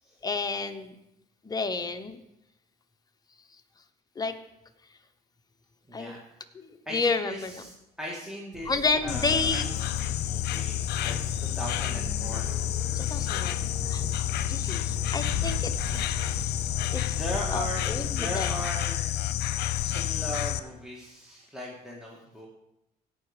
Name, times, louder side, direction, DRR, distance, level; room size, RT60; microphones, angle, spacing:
voice 1, 0.2-1.0 1.4-2.2 4.2-4.3 5.9-6.1 6.5-7.6 8.7-9.7 12.9-13.5 13.8-14.0 14.5-16.1 16.9-17.2 17.5-18.5, left 4 dB, 25° left, 6 dB, 1.0 m, -30 dB
voice 2, 5.9-6.2 6.9-12.5 17.2-17.8 18.1-19.3 19.8-22.5, equal, 5° right, -3 dB, 1.9 m, -38 dB
sound 1, 8.5-18.7, right 3 dB, 45° right, 1.7 m, -42 dB
Insect, 9.1-20.6, left 13 dB, 75° left, 0.8 m, -29 dB
17.0 x 5.8 x 5.0 m, 0.84 s
cardioid pair, 110°, 17 cm